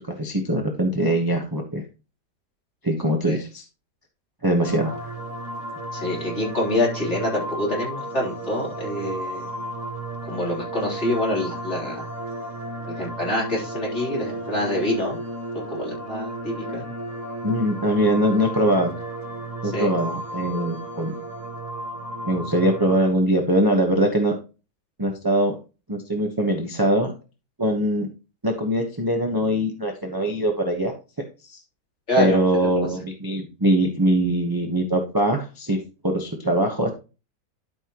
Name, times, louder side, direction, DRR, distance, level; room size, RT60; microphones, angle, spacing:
voice 1, 0.0-1.8 2.8-3.6 4.4-5.1 17.4-18.9 19.6-21.1 22.2-24.4 25.0-25.6 25.9-27.1 27.6-28.1 28.4-30.9 31.4-31.6 32.2-36.9, right 1 dB, 15° right, 1 dB, 1.0 m, -22 dB
sound 1, 4.6-23.1, right 1 dB, 65° right, 2.7 m, -33 dB
voice 2, 5.9-9.5 10.3-12.0 13.0-15.2 15.7-16.9 19.7-19.9 32.1-32.4, left 1 dB, 40° left, -4 dB, 4.0 m, -26 dB
12.0 x 5.7 x 3.0 m, 0.31 s
omnidirectional pair, 1.8 m